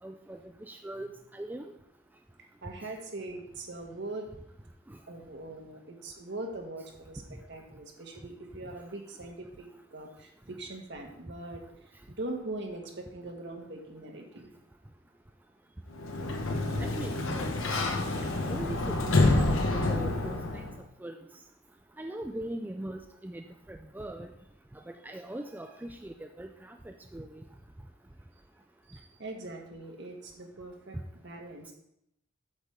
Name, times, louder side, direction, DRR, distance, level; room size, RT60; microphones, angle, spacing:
voice 1, 0.0-0.4 0.7-1.1 1.3-1.7 16.8-17.5 18.2-19.0 19.3-20.6 21.0-21.2 22.0-23.4 23.7-24.3 24.9-27.3, right 1 dB, 10° right, 4 dB, 0.3 m, -40 dB
voice 2, 2.6-4.3 5.1-11.6 12.2-14.5 28.9-31.7, right 2 dB, 60° right, 1 dB, 1.4 m, -41 dB
Sliding door, 15.9-20.8, left 2 dB, 80° left, 1.0 m, -28 dB
8.1 x 3.5 x 6.6 m, 0.76 s
head